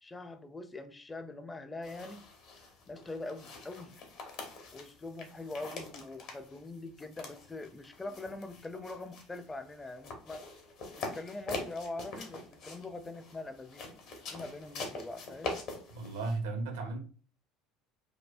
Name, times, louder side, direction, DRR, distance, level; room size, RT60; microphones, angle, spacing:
voice 1, 0.0-2.2 2.9-4.0 4.7-10.5 11.0-13.9 14.3-15.6, left 2 dB, 20° left, 0.5 m, -43 dB
sound 1, 1.8-16.4, left 3 dB, 60° left, 0.9 m, -44 dB
voice 2, 15.9-17.0, right 3 dB, 80° right, 0.7 m, -35 dB
4.9 x 2.1 x 2.5 m
hypercardioid pair, 65°, 0 cm